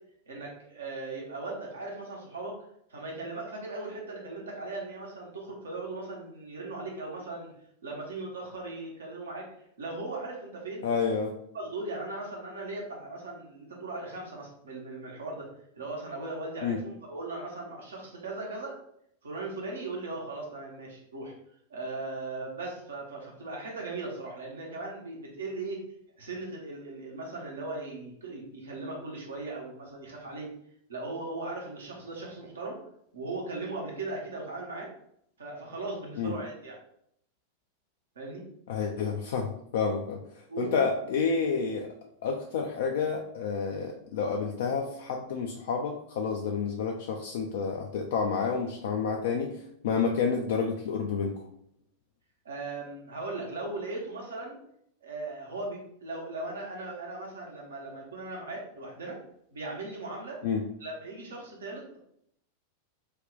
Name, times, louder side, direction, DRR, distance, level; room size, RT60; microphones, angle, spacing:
voice 1, 0.3-7.5 7.8-9.4 9.8-11.2 11.5-15.5 15.8-18.8 19.2-21.3 21.7-25.8 26.2-30.5 30.9-32.8 33.1-34.9 35.4-36.8 38.1-38.5 40.5-40.9 52.4-54.6 55.0-59.2 59.5-60.4 60.8-62.0, right 2 dB, 70° right, -2 dB, 0.9 m, -38 dB
voice 2, 10.8-11.3 16.6-16.8 36.2-36.3 38.7-40.2 40.6-41.9 42.2-51.4 60.4-60.6, left 5 dB, 55° left, 1 dB, 0.3 m, -29 dB
2.6 x 2.2 x 3.8 m, 0.71 s
figure-of-eight pair, 90°, 0 cm